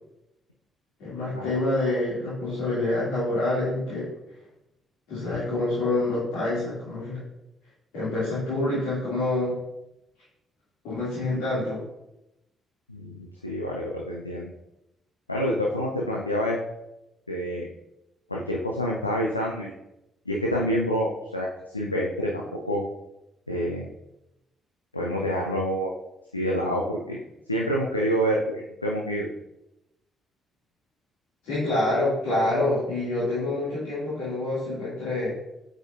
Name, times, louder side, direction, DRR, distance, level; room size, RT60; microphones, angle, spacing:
voice 1, 1.0-4.1 5.1-7.2 7.9-9.6 10.8-11.8 31.4-35.3, left 2 dB, 65° left, -10 dB, 2.3 m, -27 dB
voice 2, 12.9-14.5 15.3-16.6 17.3-17.7 18.3-19.7 20.3-22.8 23.5-23.9 24.9-25.9 26.3-27.2 27.5-29.3, equal, 90° left, -2 dB, 0.4 m, -27 dB
7.9 x 5.0 x 2.5 m, 0.90 s
figure-of-eight pair, 40°, 0 cm